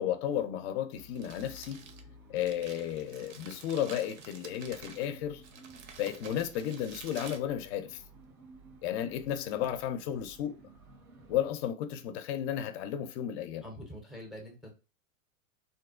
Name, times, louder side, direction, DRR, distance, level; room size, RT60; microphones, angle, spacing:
voice 1, 0.0-1.8 2.3-5.4 6.0-8.0 8.8-10.6 11.3-13.6, left 10 dB, 50° left, 0.5 m, -33 dB
Crumpling crinkling, 0.9-8.3, right 5 dB, 60° right, 0.7 m, -51 dB
sound 1, 0.9-11.5, right 2 dB, 85° right, 1.2 m, -55 dB
voice 2, 13.6-14.8, equal, ahead, 0.5 m, -45 dB
2.6 x 2.1 x 2.3 m
hypercardioid pair, 120°, 42 cm